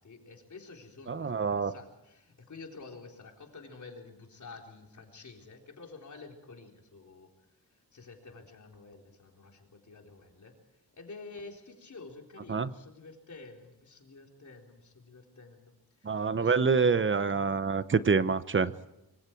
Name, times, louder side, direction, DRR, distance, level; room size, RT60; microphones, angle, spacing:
voice 1, 0.0-7.3 7.9-10.6 11.0-15.7 16.0-16.6, left 3 dB, 50° left, 4.0 m, -49 dB
voice 2, 1.1-1.7 12.5-12.7 16.0-18.7, right 5 dB, 30° right, 0.9 m, -26 dB
25.5 x 24.5 x 4.6 m
wide cardioid pair, 175°, 38 cm